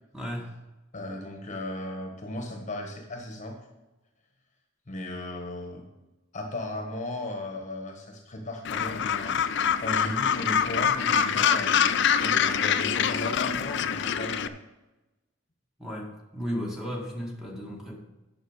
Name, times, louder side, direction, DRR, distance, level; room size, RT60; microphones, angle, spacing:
voice 1, 0.1-0.5 15.8-18.0, equal, 5° right, -2 dB, 1.9 m, -34 dB
voice 2, 0.9-3.6 4.9-5.8 6.3-14.5, left 1 dB, 40° left, 3 dB, 1.3 m, -36 dB
Gull seagull, 8.6-14.5, left 7 dB, 65° left, 0.5 m, -25 dB
9.8 x 6.2 x 6.5 m, 1.1 s
head